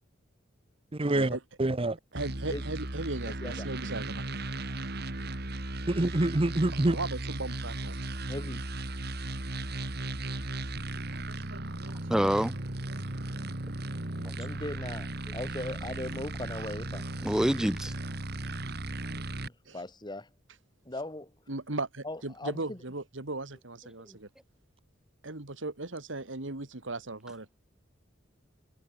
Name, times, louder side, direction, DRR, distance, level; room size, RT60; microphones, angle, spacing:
voice 1, 0.9-2.0 5.9-7.0, right 2 dB, 30° right, 0.8 m, -26 dB
voice 2, 2.1-4.2 6.7-8.0 10.7-13.3 19.7-19.8 21.5-24.3 25.2-27.5, right 2 dB, 80° right, 2.4 m, -38 dB
sound 1, 2.2-19.5, right 2 dB, 55° right, 2.4 m, -36 dB
voice 3, 3.2-3.7 8.3-8.6 14.3-17.1 19.1-20.3 20.8-21.3 22.0-22.8, left 1 dB, 25° left, 3.0 m, -39 dB
voice 4, 12.1-12.5 14.2-14.3 17.2-17.9, equal, 5° right, 0.3 m, -26 dB
head